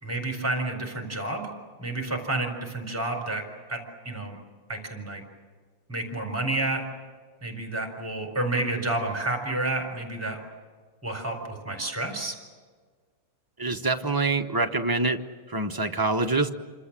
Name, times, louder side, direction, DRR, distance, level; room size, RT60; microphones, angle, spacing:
voice 1, 0.0-1.5 1.8-3.4 3.7-4.4 4.7-5.2 5.9-6.8 7.4-10.4 11.0-12.3, right 2 dB, 5° right, 3 dB, 4.3 m, -30 dB
voice 2, 13.6-15.2 15.5-16.5, right 3 dB, 25° right, 4 dB, 0.5 m, -25 dB
28.0 x 26.0 x 7.6 m, 1.5 s
omnidirectional pair, 2.4 m